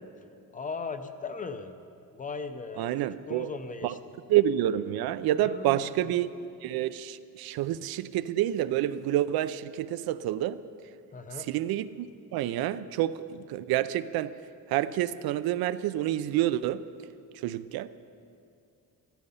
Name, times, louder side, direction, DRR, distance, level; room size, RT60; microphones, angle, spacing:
voice 1, 0.5-1.7 2.1-2.9 3.3-4.0 5.4-5.9 11.1-11.5, left 4 dB, 25° left, 9 dB, 0.5 m, -37 dB
voice 2, 2.8-3.5 3.8-4.0 4.3-6.3 6.6-10.6 11.4-14.3 14.7-16.8 17.3-17.9, right 12 dB, 80° right, 14 dB, 0.5 m, -28 dB
13.5 x 13.0 x 5.6 m, 2.5 s
cardioid pair, 165°, 36 cm